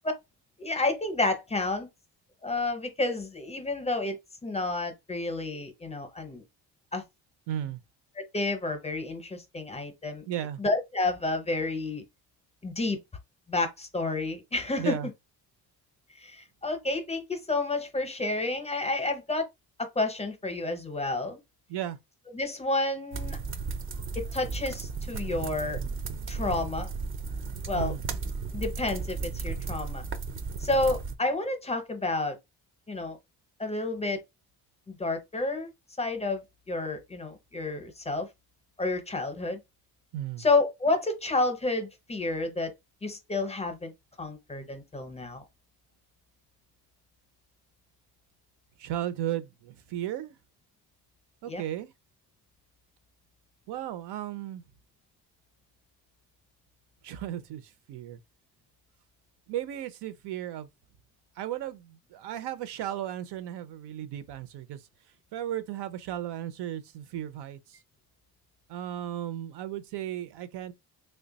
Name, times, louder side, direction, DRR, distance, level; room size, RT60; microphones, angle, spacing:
voice 1, 0.6-1.9 2.4-6.4 6.9-7.0 8.2-10.2 10.6-12.0 12.6-13.0 13.5-15.0 16.2-19.5 19.8-21.4 22.3-23.4 24.2-25.8 26.3-26.9 27.7-27.9 28.5-30.0 30.6-32.4 32.9-33.2 33.6-34.2 34.9-35.7 36.0-38.3 38.8-39.6 40.4-42.7 43.0-43.9 44.2-45.4 51.5-51.6, left 2 dB, 15° left, 0.6 m, -30 dB
voice 2, 7.5-7.8 10.3-10.6 14.8-15.1 21.7-22.0 27.7-28.1 40.1-40.5 48.8-50.4 51.4-51.9 53.7-54.6 57.0-58.2 59.5-60.7 61.4-64.8 65.3-67.8 68.7-70.7, right 11 dB, 85° right, 0.6 m, -35 dB
sound 1, 23.1-31.1, right 4 dB, 35° right, 0.4 m, -34 dB
3.2 x 2.2 x 3.9 m
cardioid pair, 155°, 40 cm